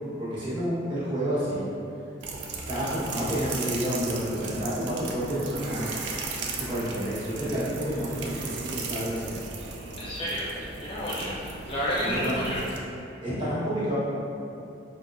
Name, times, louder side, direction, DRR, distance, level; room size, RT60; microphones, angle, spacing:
voice 1, 0.2-1.6 2.7-5.9 6.6-9.4 11.2-11.3 12.0-12.3 13.2-14.0, equal, 25° right, -11 dB, 1.1 m, -30 dB
sound 1, 2.2-12.8, right 4 dB, 65° right, 0.4 m, -37 dB
sound 2, 3.9-10.2, right 1 dB, 85° right, 0.8 m, -45 dB
voice 2, 10.0-11.4 11.7-12.6, equal, 30° left, -8 dB, 0.5 m, -30 dB
5.1 x 2.4 x 2.6 m, 2.8 s
head